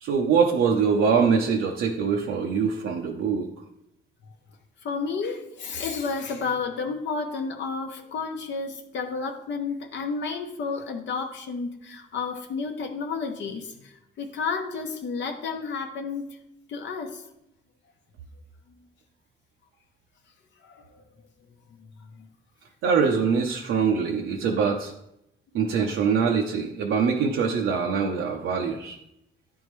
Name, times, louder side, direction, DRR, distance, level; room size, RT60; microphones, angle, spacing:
voice 1, 0.0-3.5 22.8-24.9 25.5-29.0, right 6 dB, 80° right, 0 dB, 0.6 m, -23 dB
voice 2, 4.8-16.2 16.7-17.2 20.6-21.0 25.9-26.0, left 4 dB, 65° left, 4 dB, 0.8 m, -31 dB
9.4 x 3.5 x 3.1 m, 0.82 s
cardioid pair, 90°, 20 cm